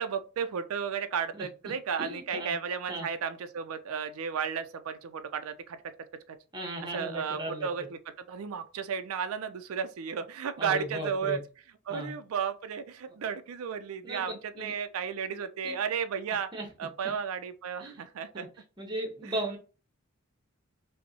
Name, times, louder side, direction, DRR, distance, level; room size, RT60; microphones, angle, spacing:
voice 1, 0.0-5.8 6.9-7.9 8.3-11.4 11.9-16.5 16.8-18.5 19.2-19.3, right 6 dB, 85° right, 0.4 m, -33 dB
voice 2, 2.0-2.5 2.9-3.1 6.5-7.9 10.6-11.4 11.9-12.1 13.1-13.2 14.0-14.7 15.6-15.7 16.5-16.7 17.8-18.0 18.3-19.6, right 1 dB, 20° right, 0.9 m, -37 dB
5.2 x 2.1 x 2.7 m
head